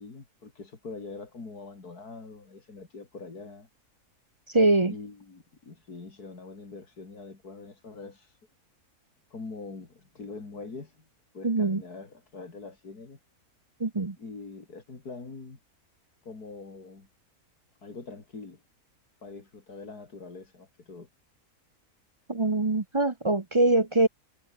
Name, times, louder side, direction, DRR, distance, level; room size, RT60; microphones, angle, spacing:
voice 1, 0.0-3.7 4.8-8.4 9.3-11.1 11.3-13.2 14.2-15.6 16.2-17.1 17.8-18.6 19.2-21.1, left 4 dB, 90° left, 4.0 m, -43 dB
voice 2, 4.5-4.9 11.4-11.8 13.8-14.2 22.3-24.1, right 2 dB, 25° right, 0.8 m, -23 dB
omnidirectional pair, 1.6 m